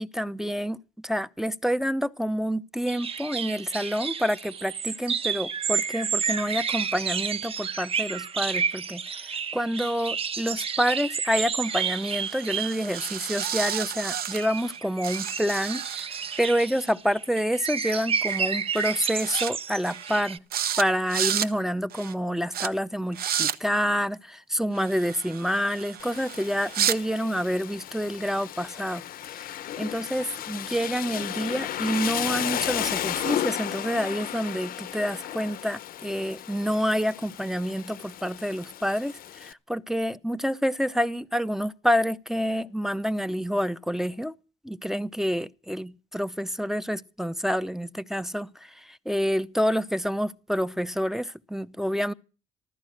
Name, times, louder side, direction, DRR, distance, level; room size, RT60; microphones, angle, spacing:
voice 1, 0.0-20.4 20.8-29.0 29.3-29.5 29.8-44.3 44.6-52.1, equal, ahead, 0.7 m, -28 dB
sound 1, 2.9-20.4, right 6 dB, 35° right, 1.0 m, -31 dB
sound 2, 11.6-14.8 15.0-16.5 17.9-18.0 18.3-18.5 18.8-19.5 19.8-20.2 20.5-20.8 21.1-21.5 21.9-22.1 22.5-22.7 23.1-23.6 24.7-27.0, right 9 dB, 65° right, 1.3 m, -32 dB
Rain, 26.0-39.5, left 12 dB, 60° left, 0.8 m, -34 dB
15.0 x 13.5 x 6.3 m
cardioid pair, 110°, 17 cm